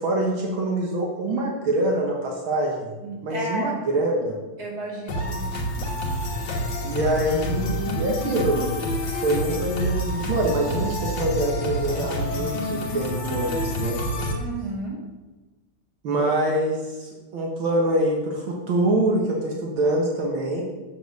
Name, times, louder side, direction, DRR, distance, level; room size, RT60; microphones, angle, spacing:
voice 1, 0.0-2.9 3.2-4.4 6.8-8.7 9.0-14.0 16.0-20.6, right 1 dB, 65° right, -1 dB, 2.0 m, -25 dB
voice 2, 3.0-3.8 4.6-5.4 14.3-15.0, right 1 dB, 20° right, -3 dB, 2.3 m, -32 dB
sound 1, 5.1-14.3, left 1 dB, 65° left, 2.1 m, -28 dB
7.4 x 6.6 x 6.4 m, 1.2 s
omnidirectional pair, 2.4 m